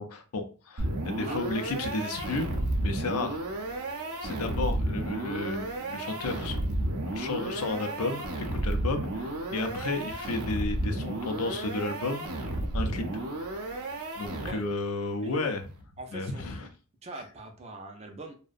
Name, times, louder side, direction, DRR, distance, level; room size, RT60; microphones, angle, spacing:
voice 1, 0.0-2.5 2.8-3.4 4.2-8.2 8.5-12.2 12.7-13.3 14.2-15.7 16.1-16.7, left 3 dB, 80° left, 7 dB, 0.5 m, -33 dB
sound 1, 0.8-14.8, right 1 dB, 80° right, 0.5 m, -32 dB
voice 2, 15.2-15.5 16.0-16.7 17.0-18.3, right 2 dB, 30° right, 4 dB, 0.4 m, -42 dB
2.6 x 2.1 x 2.3 m, 0.36 s
head